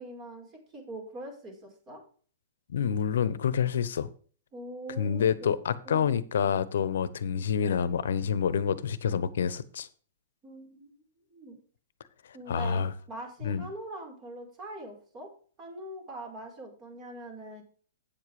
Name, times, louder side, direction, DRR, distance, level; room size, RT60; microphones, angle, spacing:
voice 1, 0.0-2.0 4.5-5.5 5.8-6.2 10.4-11.6 12.3-12.8 13.1-15.3 15.6-17.6, right 1 dB, 30° right, 1 dB, 5.1 m, -43 dB
voice 2, 2.7-4.1 5.0-9.9 12.5-12.9 13.4-13.7, left 7 dB, 70° left, 17 dB, 0.9 m, -27 dB
9.1 x 7.4 x 4.9 m, 0.43 s
hypercardioid pair, 120°, 0 cm